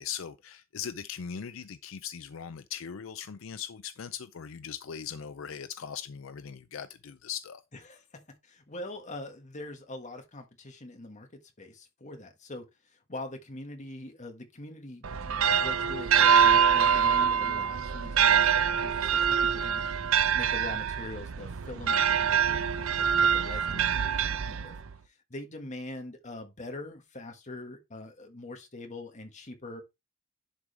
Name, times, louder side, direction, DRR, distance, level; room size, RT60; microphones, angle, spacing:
voice 1, 0.0-7.6, left 8 dB, 70° left, 0.5 m, -39 dB
voice 2, 7.9-11.3 11.6-19.8 20.3-24.7 25.0-29.8, left 2 dB, 35° left, 1.7 m, -43 dB
sound 1, 15.0-25.0, right 7 dB, 85° right, 0.6 m, -25 dB
11.0 x 4.9 x 3.4 m
head